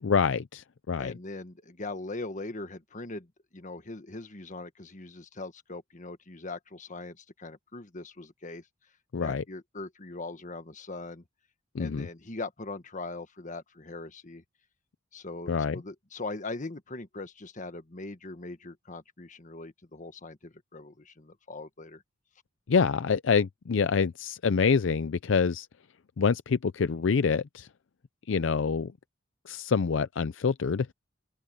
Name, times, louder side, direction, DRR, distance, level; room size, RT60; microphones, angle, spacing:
voice 1, 0.0-1.2 9.1-9.4 11.7-12.1 15.5-15.8 22.7-25.7 26.2-27.7 28.3-28.9 29.5-30.9, left 5 dB, 70° left, 0.5 m, -26 dB
voice 2, 1.0-8.7 9.2-11.2 11.8-14.4 15.1-22.0, left 2 dB, 40° left, 1.5 m, -41 dB
open air
head